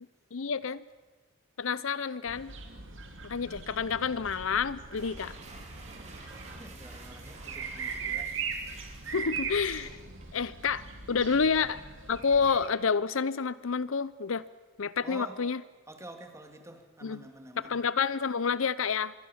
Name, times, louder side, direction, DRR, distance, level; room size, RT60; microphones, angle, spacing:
voice 1, 0.3-0.8 1.6-2.5 3.2-5.3 9.1-9.9 10.3-11.8 12.1-14.4 14.8-15.6 17.0-17.2 17.6-19.1, left 5 dB, 70° left, 18 dB, 0.7 m, -29 dB
sound 1, 2.3-12.7, right 5 dB, 60° right, 3.0 m, -40 dB
sound 2, 4.8-10.4, right 3 dB, 35° right, 4.0 m, -51 dB
voice 2, 6.5-8.4 11.3-11.4 15.0-15.4 15.9-17.8, right 1 dB, 15° right, 6 dB, 2.4 m, -48 dB
26.0 x 22.5 x 7.2 m, 1.3 s
head